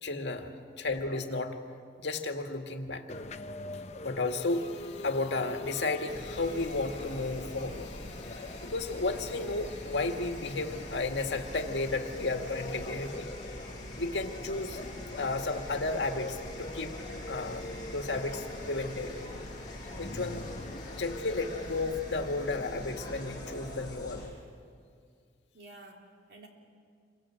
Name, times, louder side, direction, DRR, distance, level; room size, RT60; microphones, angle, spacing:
voice 1, 0.0-1.6 2.0-3.1 4.0-13.3 14.0-14.8 15.2-16.9 17.3-19.2 20.0-20.5 20.9-24.4, left 3 dB, 85° left, 4 dB, 2.0 m, -33 dB
sound 1, 3.1-21.8, left 2 dB, 40° left, 0.8 m, -45 dB
sound 2, 6.1-24.3, left 1 dB, 20° left, 6.7 m, -43 dB
voice 2, 25.5-26.5, right 2 dB, 70° right, 1 dB, 3.7 m, -52 dB
27.5 x 24.0 x 7.6 m, 2.2 s
head